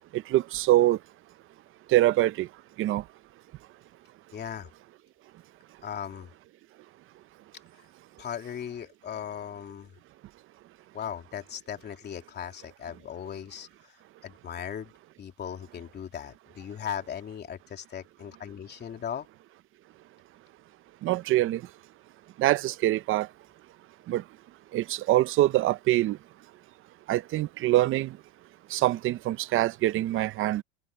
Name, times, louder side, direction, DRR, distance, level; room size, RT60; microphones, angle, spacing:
voice 1, 0.1-1.0 1.9-2.5 2.8-3.0 21.0-21.6 22.4-23.3 24.1-24.2 24.7-26.2 27.1-28.1 28.7-30.6, right 15 dB, 45° right, 0.7 m, -24 dB
voice 2, 4.3-4.7 5.8-6.3 8.2-9.9 10.9-14.0 14.2-14.9 15.2-19.3, left 9 dB, 35° left, 3.3 m, -38 dB
supercardioid pair, 130°, 30 cm